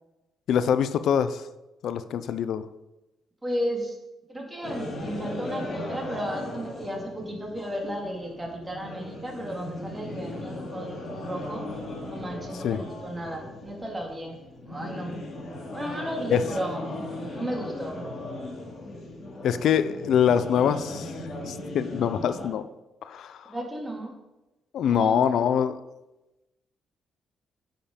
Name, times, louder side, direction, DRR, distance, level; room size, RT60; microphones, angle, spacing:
voice 1, 0.5-1.4 1.8-2.7 12.6-12.8 16.3-16.4 19.4-21.1 21.5-22.7 23.0-23.5 24.7-25.8, left 8 dB, 70° left, 14 dB, 0.5 m, -24 dB
voice 2, 3.4-4.0 4.3-11.7 12.1-14.4 14.7-15.2 15.7-16.8 17.3-18.0 23.5-24.2 24.9-25.3, equal, 15° right, 1 dB, 2.1 m, -34 dB
sound 1, 4.6-22.5, left 1 dB, 55° left, 2.5 m, -37 dB
8.9 x 5.1 x 5.1 m, 1.0 s
cardioid pair, 90°, 0 cm